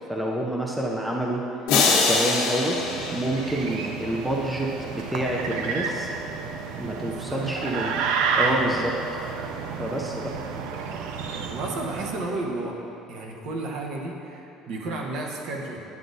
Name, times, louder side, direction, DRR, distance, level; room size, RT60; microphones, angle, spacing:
voice 1, 0.1-1.4 1.9-2.8 3.1-6.1 6.8-8.0 8.3-9.2 9.8-10.3, right 1 dB, 5° right, -2 dB, 0.4 m, -28 dB
sound 1, 1.7-4.0, left 4 dB, 75° left, 1.2 m, -24 dB
sound 2, 2.6-12.4, right 5 dB, 75° right, 0.5 m, -30 dB
voice 2, 7.3-7.7 8.3-8.6 11.5-12.8 13.1-15.8, right 2 dB, 55° right, 0 dB, 0.9 m, -32 dB
9.4 x 7.4 x 2.6 m, 2.8 s
cardioid pair, 170°, 0 cm